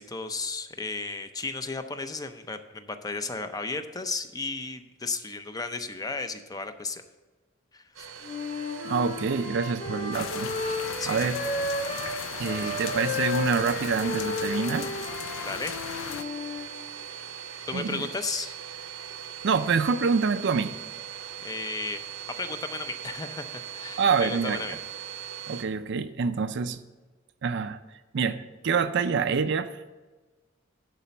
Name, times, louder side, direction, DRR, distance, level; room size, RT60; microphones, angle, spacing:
voice 1, 0.0-7.0 7.7-8.1 11.0-11.3 15.4-15.8 17.2-17.3 17.7-18.5 21.4-22.0 22.4-23.4 23.7-24.8, left 3 dB, 20° left, 9 dB, 0.5 m, -34 dB
Domestic sounds home sounds, 7.9-25.6, right 9 dB, 80° right, 0.9 m, -41 dB
Wind instrument woodwind instrument, 8.2-12.2 12.4-16.7, left 2 dB, 55° left, 1.7 m, -33 dB
voice 2, 8.8-10.5 11.1-11.4 12.4-14.9 17.7-18.0 19.4-20.7 24.0-24.6 25.5-26.8 27.4-27.8 28.1-29.9, right 5 dB, 60° right, 11 dB, 0.4 m, -26 dB
sound 1, 10.1-16.2, left 9 dB, 80° left, 0.4 m, -37 dB
11.0 x 4.2 x 6.8 m, 1.2 s
head